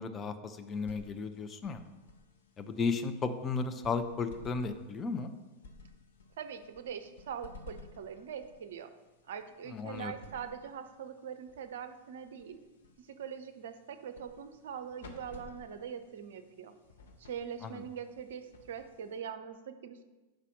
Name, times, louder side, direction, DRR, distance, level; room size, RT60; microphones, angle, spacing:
voice 1, 0.0-1.8 2.6-5.3 9.7-10.1 17.6-17.8, left 4 dB, 25° left, 8 dB, 0.5 m, -34 dB
sound 1, 0.5-19.4, left 3 dB, 60° left, 0.7 m, -56 dB
voice 2, 6.4-8.9 9.2-12.6 13.0-16.7 17.2-20.0, right 7 dB, 60° right, 10 dB, 0.5 m, -42 dB
5.1 x 4.1 x 5.9 m, 1.2 s
figure-of-eight pair, 90°, 0 cm